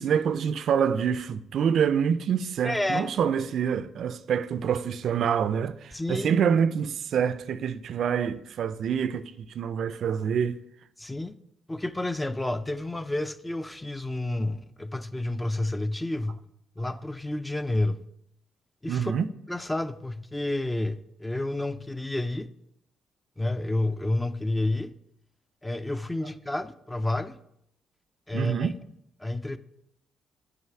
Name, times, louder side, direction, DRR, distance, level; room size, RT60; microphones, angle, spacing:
voice 1, 0.0-10.6 18.9-19.3 28.3-28.7, right 7 dB, 65° right, 0.3 m, -26 dB
voice 2, 2.6-3.1 5.9-6.4 11.0-11.4 11.7-16.4 16.8-18.0 18.8-19.1 19.5-22.5 23.4-24.9 25.6-27.4 28.3-28.7 29.2-29.6, left 2 dB, 10° left, 0.3 m, -30 dB
7.6 x 3.0 x 5.7 m
cardioid pair, 90°, 0 cm